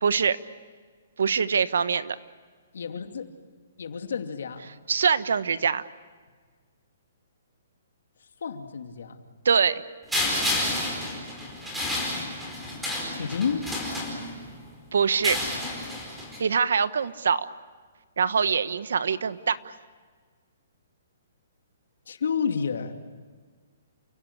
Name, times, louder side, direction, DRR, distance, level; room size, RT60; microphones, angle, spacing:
voice 1, 0.0-0.4 1.2-2.2 4.9-5.8 9.4-9.8 14.9-15.4 16.4-17.5 18.2-19.6, right 6 dB, 80° right, 14 dB, 1.2 m, -23 dB
voice 2, 2.7-3.4 3.8-4.7 8.4-9.2 13.1-13.7 22.1-22.9, left 6 dB, 80° left, 6 dB, 2.6 m, -30 dB
sound 1, 10.1-14.6 15.1-16.4, left 1 dB, 5° right, 4.8 m, -30 dB
29.5 x 17.0 x 8.6 m, 1.5 s
hypercardioid pair, 165°, 0 cm